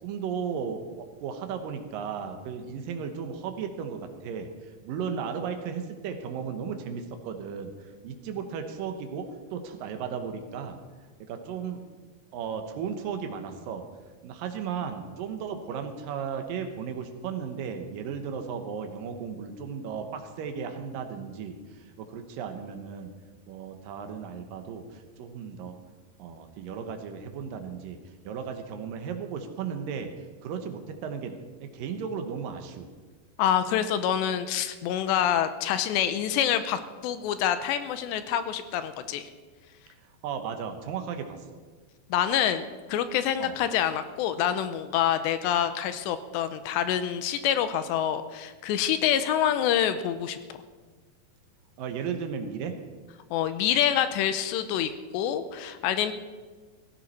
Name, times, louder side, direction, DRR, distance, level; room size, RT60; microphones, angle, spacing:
voice 1, 0.0-4.5 4.8-10.8 11.3-11.8 12.3-13.8 14.2-23.1 23.5-25.7 26.2-28.0 28.2-30.1 30.4-32.9 40.2-41.6 43.4-43.5 51.8-52.8, right 6 dB, 70° right, 6 dB, 2.2 m, -35 dB
voice 2, 33.4-39.3 42.1-42.6 42.9-50.4 53.3-56.1, left 10 dB, 85° left, 11 dB, 2.8 m, -26 dB
16.5 x 15.5 x 4.2 m, 1.4 s
omnidirectional pair, 5.2 m